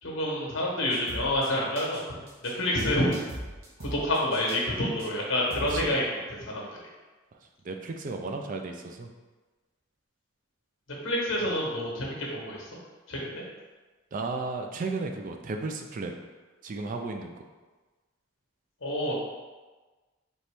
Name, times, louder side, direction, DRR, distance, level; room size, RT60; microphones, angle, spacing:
voice 1, 0.0-2.0 2.4-3.1 3.8-6.7 11.0-12.7 13.1-13.4 18.8-19.2, left 1 dB, 75° left, -3 dB, 1.2 m, -28 dB
sound 1, 0.9-1.5 1.7-2.0 2.3-2.5 2.8-4.6 5.0-5.1 5.5-5.8, right 1 dB, 75° right, 1.0 m, -39 dB
voice 2, 7.6-9.1 14.1-16.2 16.6-17.4, right 3 dB, 40° right, 4 dB, 0.4 m, -34 dB
4.3 x 3.0 x 3.4 m, 1.3 s
head